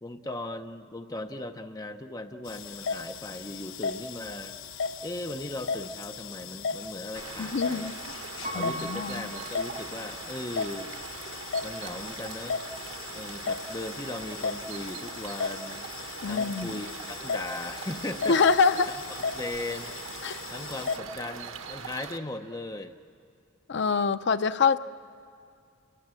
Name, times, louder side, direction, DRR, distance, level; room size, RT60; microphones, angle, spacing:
voice 1, 0.0-4.6 5.0-7.9 8.5-10.9 11.6-12.6 13.1-15.9 16.3-19.9 20.5-23.0, left 2 dB, 20° left, 0.7 m, -38 dB
sound 1, 2.5-21.0, left 5 dB, 75° left, 0.9 m, -36 dB
sound 2, 7.1-22.2, right 5 dB, 85° right, 1.1 m, -41 dB
voice 2, 7.4-7.9 8.5-9.3 16.2-16.8 18.3-19.0 20.2-20.4 23.7-24.8, left 5 dB, 60° left, 0.5 m, -25 dB
Piano, 8.4-10.4 11.0-11.1, right 2 dB, 45° right, 5.5 m, -40 dB
29.0 x 21.0 x 7.6 m
head